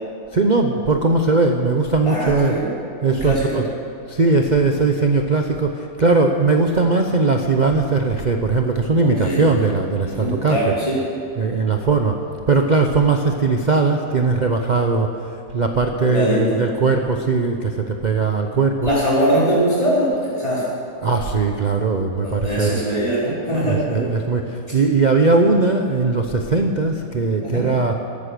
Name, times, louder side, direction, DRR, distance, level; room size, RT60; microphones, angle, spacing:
voice 1, 0.3-2.5 3.0-3.6 4.1-10.7 11.4-12.2 12.5-18.9 21.0-22.7 23.7-27.9, right 3 dB, 40° right, 3 dB, 0.6 m, -19 dB
voice 2, 2.1-2.7 3.0-3.5 9.0-9.4 10.0-11.0 16.0-16.6 18.8-20.6 22.2-24.0 27.4-27.6, right 1 dB, 20° left, -14 dB, 4.4 m, -21 dB
14.0 x 13.0 x 6.7 m, 2.8 s
omnidirectional pair, 1.7 m